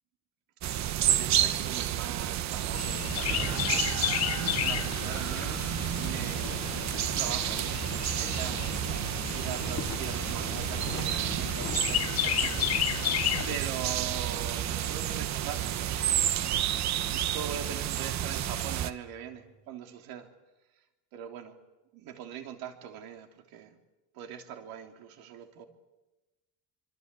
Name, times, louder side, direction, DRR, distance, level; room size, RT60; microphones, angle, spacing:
sound 1, 0.6-18.9, right 11 dB, 50° right, 1.2 m, -30 dB
voice 1, 0.6-5.6 5.9-13.1 13.4-16.1 16.5-20.3 21.1-21.6 21.9-23.8 24.1-25.7, right 8 dB, 85° right, 5 dB, 3.3 m, -42 dB
Chirp tweet, 2.7-13.6, left 13 dB, 45° left, 1.0 m, -33 dB
sound 2, 3.3-8.4 9.7-19.7, right 7 dB, 25° right, 1.1 m, -48 dB
25.0 x 25.0 x 8.4 m, 1.1 s
cardioid pair, 155°, 35 cm